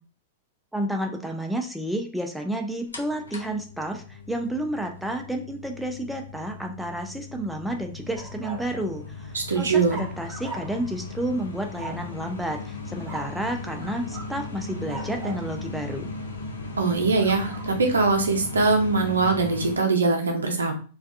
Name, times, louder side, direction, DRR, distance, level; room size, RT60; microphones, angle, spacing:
voice 1, 0.7-16.1, right 1 dB, ahead, 3 dB, 0.4 m, -31 dB
sound 1, 2.9-19.8, left 3 dB, 85° left, 0.5 m, -37 dB
sound 2, 8.2-8.7 9.9-10.9 11.8-12.1 13.0-13.4 13.8-14.3 14.9-15.5 17.2-17.7, right 2 dB, 35° right, 0.8 m, -39 dB
voice 2, 9.3-10.1 16.8-20.7, right 4 dB, 85° right, 4 dB, 0.6 m, -22 dB
2.4 x 2.2 x 2.5 m, 0.38 s
hypercardioid pair, 105°, 0 cm